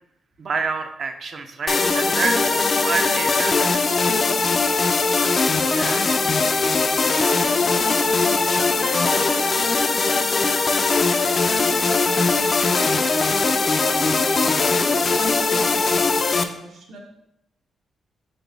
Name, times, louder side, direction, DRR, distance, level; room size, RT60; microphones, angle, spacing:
voice 1, 0.4-4.0 5.7-6.3, right 5 dB, 50° right, 7 dB, 0.5 m, -29 dB
sound 1, 1.7-16.4, left 4 dB, 40° left, 0.3 m, -20 dB
voice 2, 2.2-3.7 4.3-5.3 7.0-11.0 11.4-13.4 13.8-17.0, right 1 dB, 75° right, -1 dB, 0.9 m, -39 dB
sound 2, 10.3-15.4, left 3 dB, 90° left, 0.8 m, -42 dB
4.0 x 3.7 x 3.4 m, 0.82 s
cardioid pair, 110°, 0 cm